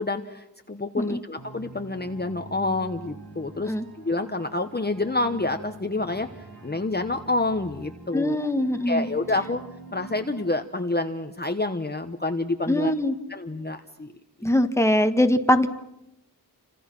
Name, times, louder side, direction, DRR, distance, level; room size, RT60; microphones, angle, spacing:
voice 1, 0.0-6.3 6.6-8.5 8.9-9.6 9.9-12.9 13.3-14.1, left 2 dB, 25° left, 6 dB, 1.2 m, -28 dB
sound 1, 1.4-10.5, right 3 dB, 60° right, 5.8 m, -45 dB
voice 2, 8.1-9.1 12.7-13.1 14.4-15.7, left 1 dB, 5° left, 8 dB, 1.4 m, -22 dB
29.0 x 26.5 x 6.1 m, 0.89 s
wide cardioid pair, 95°, 39 cm